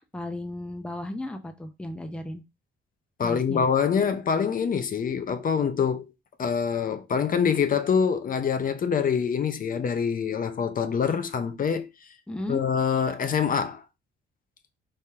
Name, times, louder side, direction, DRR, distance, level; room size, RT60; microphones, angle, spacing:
voice 1, 0.0-2.4 3.2-3.7 12.3-12.6, left 1 dB, 5° left, 0.6 m, -35 dB
voice 2, 3.2-6.1 6.4-11.9 12.5-13.8, left 6 dB, 45° left, 0.7 m, -25 dB
4.2 x 3.4 x 3.4 m
cardioid pair, 90°, 20 cm